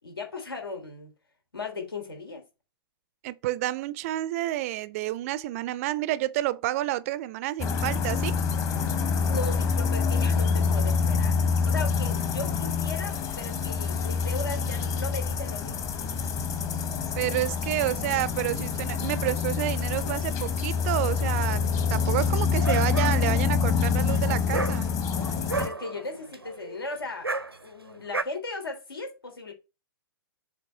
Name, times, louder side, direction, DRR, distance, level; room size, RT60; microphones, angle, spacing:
voice 1, 0.0-1.1 1.5-2.4 9.3-11.4 11.6-15.9 25.6-27.3 27.6-29.5, left 3 dB, 75° left, 3.2 m, -37 dB
voice 2, 3.2-8.4 17.1-24.9, right 15 dB, 35° right, 0.5 m, -29 dB
sound 1, 7.6-25.7, left 5 dB, 25° left, 1.2 m, -26 dB
Dog, 22.2-28.2, right 3 dB, 90° right, 0.8 m, -34 dB
7.3 x 4.0 x 4.3 m
figure-of-eight pair, 110°, 12 cm